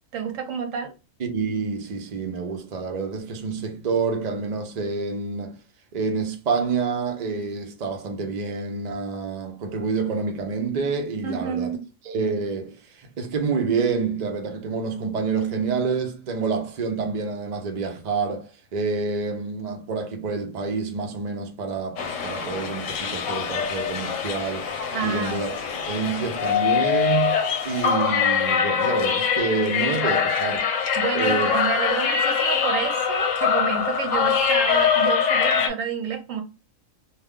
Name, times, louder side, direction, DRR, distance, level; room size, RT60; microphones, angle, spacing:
voice 1, 0.1-0.9 11.2-11.8 24.9-25.4 31.0-36.4, right 6 dB, 75° right, 1.0 m, -29 dB
voice 2, 1.2-5.6 5.9-11.8 12.0-24.7 25.0-27.4 27.6-31.5, right 5 dB, 50° right, 0.5 m, -28 dB
sound 1, 22.0-35.7, left 7 dB, 70° left, 1.0 m, -23 dB
2.4 x 2.2 x 3.5 m
omnidirectional pair, 1.4 m